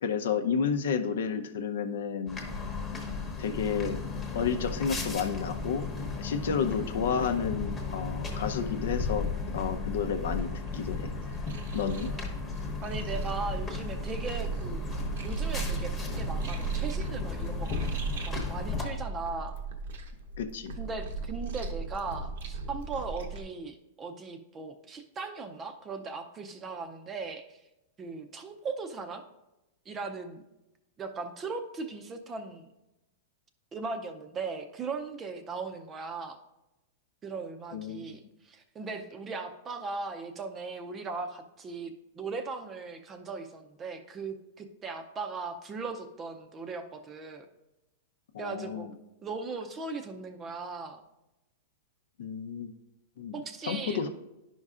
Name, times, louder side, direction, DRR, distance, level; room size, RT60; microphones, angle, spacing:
voice 1, 0.0-2.4 3.4-4.0 4.3-5.9 6.2-9.3 9.5-11.1 11.7-12.1 20.4-20.7 37.7-38.2 48.3-48.9 52.2-52.7 53.2-53.4 53.7-54.1, left 6 dB, 75° left, 8 dB, 0.6 m, -31 dB
sound 1, 2.3-18.8, left 4 dB, 10° left, 0.9 m, -35 dB
sound 2, 10.2-23.4, right 4 dB, 75° right, 0.8 m, -37 dB
voice 2, 11.8-12.3 12.8-14.8 15.2-17.8 18.2-19.6 20.8-27.6 28.0-29.2 29.9-30.4 31.0-32.7 33.7-36.4 37.2-47.5 48.4-48.9 49.2-51.0 53.3-54.1, right 4 dB, 15° right, 7 dB, 0.5 m, -38 dB
11.0 x 5.4 x 2.4 m, 0.95 s
supercardioid pair, 160°, 0 cm